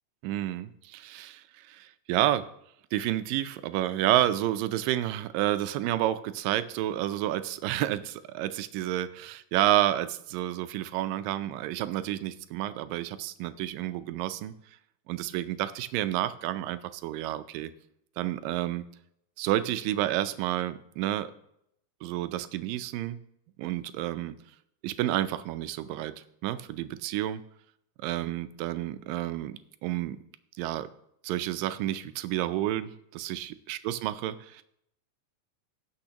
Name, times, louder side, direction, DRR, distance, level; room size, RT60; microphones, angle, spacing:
voice 1, 0.2-2.5 2.9-14.5 15.1-17.7 18.2-18.9 19.4-21.3 22.0-23.2 23.6-24.4 24.8-27.4 28.0-30.2 30.6-30.9 31.2-34.6, right 13 dB, 90° right, 12 dB, 2.3 m, -30 dB
18.0 x 6.4 x 2.9 m, 0.75 s
omnidirectional pair, 3.9 m